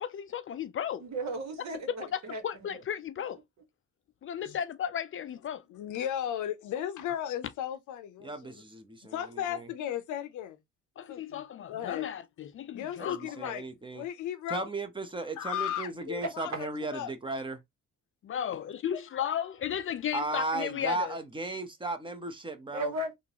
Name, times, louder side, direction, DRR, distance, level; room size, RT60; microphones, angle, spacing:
voice 1, 0.0-1.0 1.9-3.4 4.2-5.6 11.0-13.2 13.4-13.5 18.2-21.2, left 9 dB, 45° left, 0.4 m, -34 dB
voice 2, 1.0-2.7 22.7-23.1, right 1 dB, 65° right, 1.5 m, -36 dB
voice 3, 5.7-8.6 9.1-10.6 11.1-12.1 12.7-13.6 13.9-14.7 15.4-17.1, left 10 dB, 80° left, 0.7 m, -35 dB
voice 4, 8.2-9.7 13.0-14.0 14.5-17.6 20.1-22.9, right 2 dB, 15° right, 0.9 m, -36 dB
3.7 x 2.6 x 2.9 m
cardioid pair, 90°, 30 cm